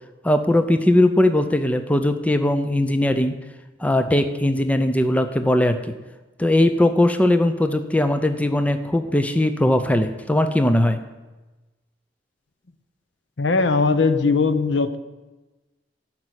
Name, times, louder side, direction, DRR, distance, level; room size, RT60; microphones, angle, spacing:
voice 1, 0.2-3.4 3.8-5.8 6.4-11.0, left 1 dB, 10° left, 8 dB, 0.5 m, -19 dB
voice 2, 13.4-15.0, left 4 dB, 70° left, 12 dB, 0.7 m, -19 dB
11.5 x 6.0 x 8.1 m, 1.1 s
head